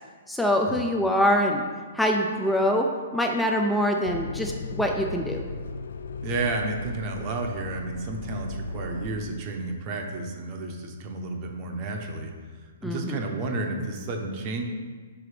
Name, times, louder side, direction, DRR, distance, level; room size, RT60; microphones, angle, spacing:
voice 1, 0.3-1.6 1.9-2.9 3.1-5.4 12.8-13.2, equal, ahead, 2 dB, 0.3 m, -24 dB
sound 1, 4.0-9.2, left 3 dB, 80° left, 0.4 m, -36 dB
voice 2, 6.2-12.3 12.8-14.6, right 2 dB, 30° right, 2 dB, 0.7 m, -31 dB
4.9 x 4.8 x 4.8 m, 1.5 s
hypercardioid pair, 165°, 0 cm